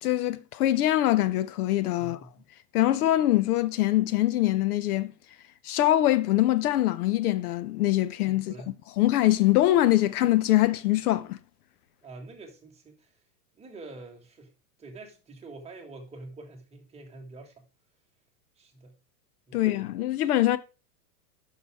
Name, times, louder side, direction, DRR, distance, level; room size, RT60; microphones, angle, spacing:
voice 1, 0.0-2.2 2.7-5.1 5.6-8.5 9.0-11.4 19.5-20.6, left 14 dB, 65° left, 0.7 m, -23 dB
voice 2, 1.9-2.4 8.3-8.8 12.0-13.2 13.5-14.5 14.8-17.7 18.6-19.0 19.5-19.8, right 2 dB, 15° right, 1.5 m, -46 dB
9.5 x 6.0 x 3.5 m
hypercardioid pair, 135°, 48 cm